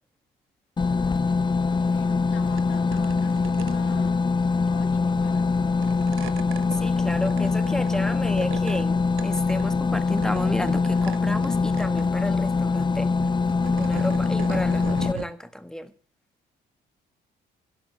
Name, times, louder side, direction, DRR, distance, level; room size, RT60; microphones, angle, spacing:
sound 1, 0.8-15.1, left 4 dB, 25° left, 0.5 m, -23 dB
voice 1, 1.8-4.2 4.7-6.0, left 9 dB, 70° left, 1.7 m, -48 dB
sound 2, 2.4-2.6 2.9-4.3 5.2-5.5 5.8-8.8 9.2-9.8 10.2-11.5 11.7-12.1 13.1-15.3, right 11 dB, 80° right, 1.0 m, -39 dB
voice 2, 6.7-13.1 13.8-15.9, equal, 5° left, 1.6 m, -32 dB
16.5 x 6.0 x 8.1 m
cardioid pair, 90°, 20 cm